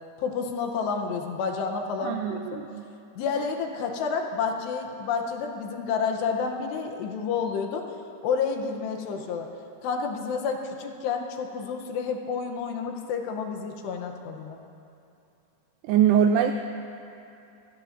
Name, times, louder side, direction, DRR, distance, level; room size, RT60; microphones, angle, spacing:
voice 1, 0.2-2.6 3.2-7.9 8.2-9.5 9.8-14.6, left 5 dB, 75° left, 3 dB, 2.8 m, -30 dB
voice 2, 2.0-2.8 15.9-16.5, right 8 dB, 90° right, 6 dB, 2.3 m, -22 dB
26.5 x 16.0 x 2.6 m, 2.7 s
omnidirectional pair, 5.3 m